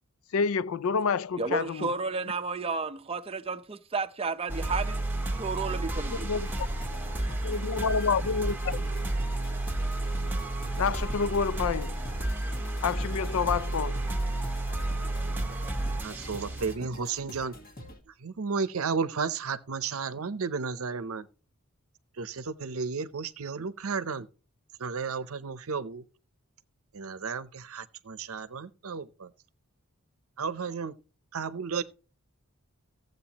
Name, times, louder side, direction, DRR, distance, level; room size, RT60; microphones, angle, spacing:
voice 1, 0.3-1.9 6.2-6.5 7.4-8.9 10.8-12.0 12.8-14.1, left 5 dB, 70° left, 0.4 m, -28 dB
voice 2, 1.4-5.0 5.3-6.3, right 4 dB, 25° right, 0.6 m, -32 dB
sound 1, 4.5-16.8, right 1 dB, 10° right, 1.2 m, -31 dB
sound 2, 6.4-18.0, equal, 40° left, 1.6 m, -47 dB
voice 3, 16.0-17.6 18.2-21.3 22.2-24.3 24.8-26.0 26.9-29.3 30.4-31.0 31.3-31.8, right 5 dB, 70° right, 0.7 m, -33 dB
15.0 x 7.9 x 2.9 m
head